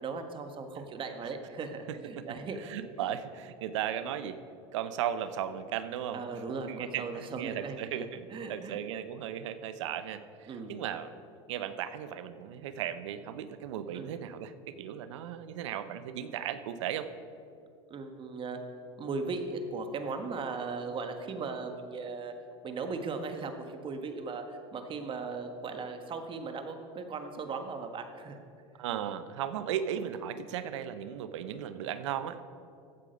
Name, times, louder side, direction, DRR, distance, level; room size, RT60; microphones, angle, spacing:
voice 1, 0.0-2.6 6.1-7.9 8.3-8.8 10.5-10.8 13.9-14.1 17.9-18.6 19.0-22.3 22.6-28.4, right 4 dB, 35° right, 7 dB, 1.4 m, -38 dB
voice 2, 2.6-4.4 4.7-6.2 6.7-11.1 11.5-17.1 28.8-32.4, right 10 dB, 90° right, 12 dB, 0.7 m, -36 dB
15.0 x 8.5 x 5.3 m, 2.6 s
supercardioid pair, 110°, 15 cm